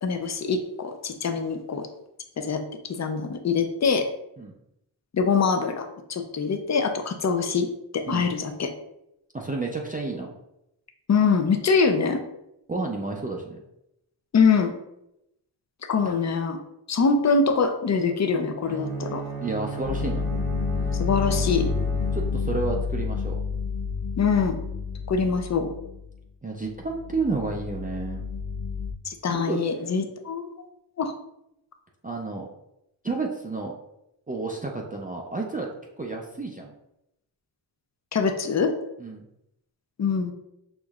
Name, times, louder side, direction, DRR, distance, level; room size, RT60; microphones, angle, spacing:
voice 1, 0.0-1.9 2.4-4.1 5.1-7.7 7.9-8.7 11.1-12.2 14.3-14.7 15.9-16.6 16.9-19.2 21.0-21.7 24.2-24.6 25.1-25.7 29.1-30.5 31.0-31.1 38.1-38.7 40.0-40.3, left 5 dB, 40° left, 7 dB, 0.5 m, -24 dB
voice 2, 9.3-10.3 12.7-13.6 16.1-16.2 19.4-20.3 22.1-23.4 26.4-28.2 29.3-29.6 32.0-32.5 33.0-33.7 34.3-35.7 36.0-36.7 39.0-39.2, right 3 dB, 20° right, -1 dB, 0.4 m, -30 dB
Bowed string instrument, 18.6-22.8, right 4 dB, 50° right, 0.8 m, -35 dB
sound 1, 19.8-26.2 26.7-28.9, left 5 dB, 70° left, 0.9 m, -29 dB
6.3 x 3.0 x 2.4 m, 0.84 s
wide cardioid pair, 135°, 45 cm